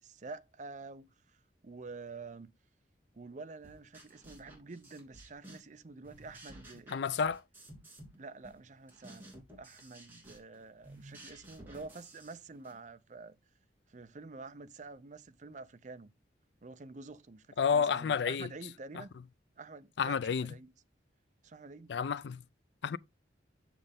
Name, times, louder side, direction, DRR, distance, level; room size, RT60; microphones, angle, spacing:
voice 1, 0.0-2.5 3.1-7.0 8.1-13.4 13.9-16.1 16.6-19.1 19.6-20.7 21.4-22.0, right 3 dB, 40° right, 0.6 m, -48 dB
sound 1, 3.6-5.8 6.0-8.2 8.4-12.8, right 1 dB, 10° right, 2.9 m, -54 dB
voice 2, 6.9-7.4 17.6-18.5 20.0-20.5 21.9-22.4 22.8-23.0, left 6 dB, 65° left, 0.4 m, -30 dB
7.5 x 6.6 x 3.5 m
head